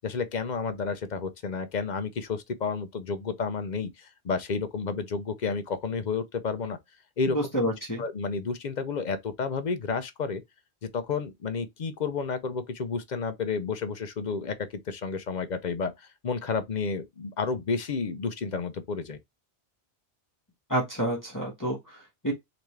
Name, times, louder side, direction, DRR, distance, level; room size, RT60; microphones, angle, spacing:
voice 1, 0.0-6.8 7.2-7.4 8.0-10.4 10.8-14.6 14.9-19.2, left 5 dB, 50° left, 0.7 m, -31 dB
voice 2, 7.3-8.0 20.7-22.3, right 1 dB, 20° left, 1.3 m, -29 dB
3.9 x 3.5 x 3.2 m
omnidirectional pair, 1.1 m